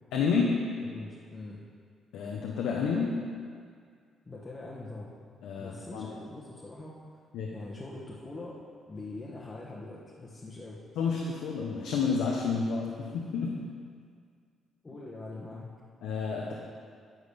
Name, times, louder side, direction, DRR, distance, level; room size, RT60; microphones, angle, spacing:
voice 1, 0.1-0.5 2.1-3.2 5.4-6.1 7.3-7.5 11.0-13.5 16.0-16.5, left 5 dB, 85° left, -2 dB, 0.9 m, -30 dB
voice 2, 0.8-1.6 4.2-5.1 5.6-7.2 7.5-8.6 8.9-10.8 14.8-15.7, left 2 dB, 25° left, -5 dB, 1.2 m, -43 dB
10.0 x 4.0 x 6.8 m, 2.1 s
cardioid pair, 90°, 0 cm